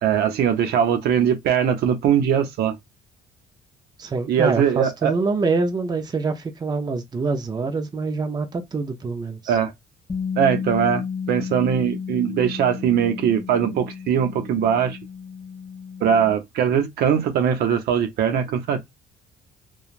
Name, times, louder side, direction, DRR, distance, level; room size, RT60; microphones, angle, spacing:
voice 1, 0.0-2.8 4.3-5.1 9.5-9.7 10.4-15.0 16.0-18.9, right 8 dB, 70° right, 0.7 m, -21 dB
voice 2, 4.0-9.6, right 4 dB, 25° right, 0.6 m, -25 dB
Bass guitar, 10.1-16.3, left 6 dB, 20° left, 1.8 m, -32 dB
2.9 x 2.3 x 2.4 m
cardioid pair, 110°, 17 cm